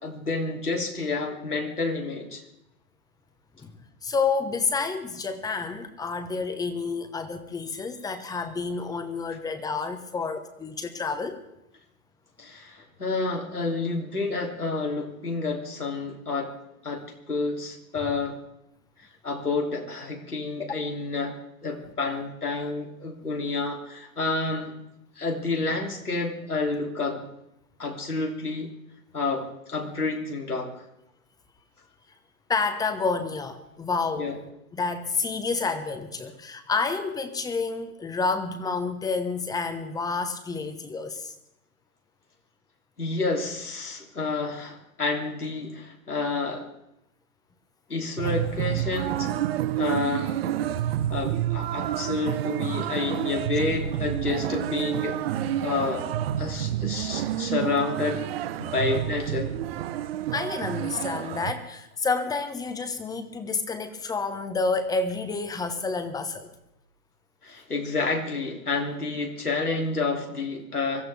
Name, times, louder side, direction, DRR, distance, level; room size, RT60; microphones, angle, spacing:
voice 1, 0.0-2.4 12.4-16.6 16.8-18.4 19.0-24.7 25.2-27.2 27.8-28.7 29.1-30.8 34.2-34.4 43.0-46.7 47.9-49.3 49.8-50.3 51.1-55.2 55.6-56.1 56.4-58.2 58.6-59.5 67.4-71.0, left 3 dB, 90° left, 1 dB, 3.2 m, -29 dB
voice 2, 3.6-11.4 32.5-34.3 34.7-41.3 60.3-66.5, left 4 dB, 10° left, 9 dB, 1.1 m, -29 dB
sound 1, 48.2-61.5, right 11 dB, 40° right, 1.0 m, -29 dB
24.0 x 14.5 x 3.5 m, 0.84 s
figure-of-eight pair, 120°, 44 cm